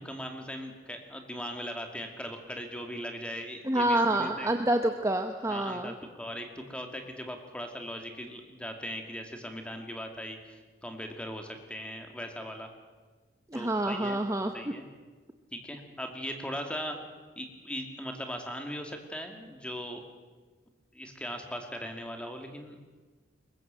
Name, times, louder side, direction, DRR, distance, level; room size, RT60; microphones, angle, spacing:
voice 1, 0.0-4.5 5.5-12.7 13.5-14.2 14.5-14.9 15.5-17.0 17.4-20.0 20.9-22.8, equal, 5° left, 4 dB, 2.4 m, -39 dB
voice 2, 3.6-5.9 13.5-14.7, right 1 dB, 15° right, 5 dB, 0.9 m, -28 dB
22.5 x 20.5 x 7.6 m, 1.4 s
head